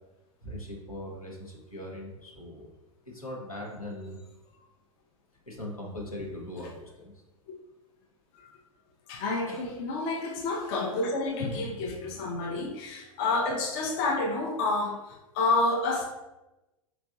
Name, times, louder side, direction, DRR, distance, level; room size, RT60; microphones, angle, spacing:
voice 1, 0.4-2.7 3.0-4.2 5.5-7.1 9.5-9.6, left 1 dB, 90° left, -1 dB, 1.1 m, -40 dB
voice 2, 9.1-16.0, left 2 dB, 45° left, 2 dB, 0.6 m, -29 dB
4.8 x 3.4 x 2.5 m, 1.0 s
figure-of-eight pair, 95°, 18 cm